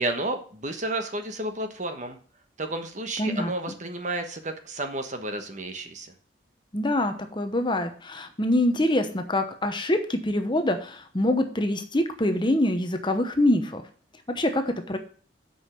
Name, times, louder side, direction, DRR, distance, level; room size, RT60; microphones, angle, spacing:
voice 1, 0.0-2.2 2.6-6.1, right 2 dB, 40° right, 7 dB, 1.2 m, -31 dB
voice 2, 3.2-3.5 6.7-13.8 14.3-15.0, left 1 dB, 25° left, 7 dB, 0.9 m, -25 dB
8.1 x 5.5 x 7.4 m, 0.43 s
head